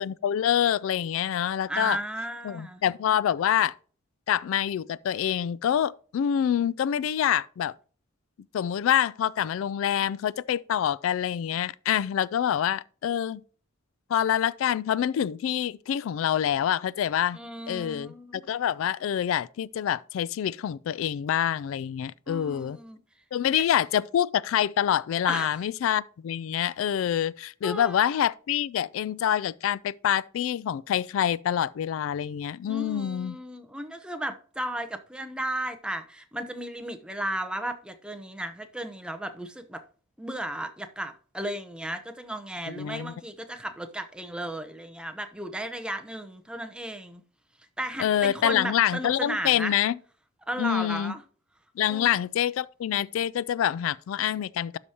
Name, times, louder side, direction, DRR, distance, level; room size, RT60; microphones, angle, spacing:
voice 1, 0.0-2.0 2.4-3.7 4.3-7.7 8.5-13.4 14.1-17.4 17.7-22.8 23.3-33.4 42.7-43.1 48.0-49.9 50.6-51.1 51.8-54.8, left 10 dB, 80° left, 0.3 m, -26 dB
voice 2, 1.7-2.8 17.3-18.4 22.3-23.0 23.5-23.6 25.3-25.5 27.6-28.0 32.6-39.8 40.2-47.2 47.8-49.7 50.5-51.2 51.9-52.2, right 1 dB, 5° right, 0.7 m, -35 dB
12.0 x 4.9 x 2.8 m
head